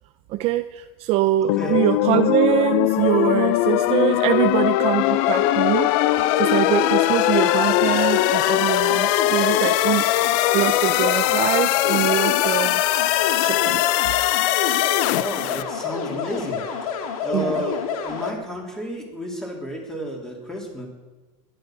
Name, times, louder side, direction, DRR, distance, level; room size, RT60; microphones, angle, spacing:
voice 1, 0.3-10.1 10.5-12.8 13.4-13.8 17.3-17.7, right 14 dB, 35° right, 9 dB, 0.5 m, -23 dB
sound 1, 1.5-15.6, left 17 dB, 45° left, 0.5 m, -21 dB
sound 2, 5.0-18.3, left 6 dB, 75° left, 2.4 m, -28 dB
voice 2, 15.0-16.6 17.2-20.9, equal, 5° left, 0 dB, 3.2 m, -31 dB
20.5 x 11.0 x 6.1 m, 1.3 s
supercardioid pair, 160°, 18 cm